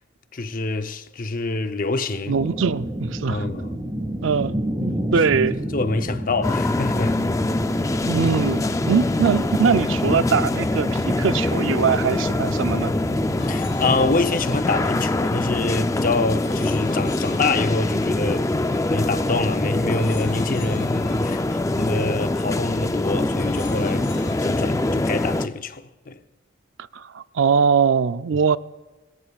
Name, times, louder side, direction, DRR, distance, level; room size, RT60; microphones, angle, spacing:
voice 1, 0.3-2.4 3.3-3.7 5.5-7.2 8.2-8.3 13.4-18.5 18.9-26.2, left 3 dB, 45° left, 0.7 m, -26 dB
sound 1, 2.3-14.1, equal, 20° right, 1.9 m, -31 dB
voice 2, 2.3-3.4 4.2-5.6 8.1-12.9 26.9-28.6, right 6 dB, 70° right, 0.5 m, -22 dB
sound 2, 6.4-25.5, left 2 dB, 15° left, 0.4 m, -24 dB
sound 3, 13.4-15.6 16.4-19.1 19.9-22.6 23.4-24.5, left 4 dB, 65° left, 4.8 m, -43 dB
25.5 x 20.5 x 2.4 m
head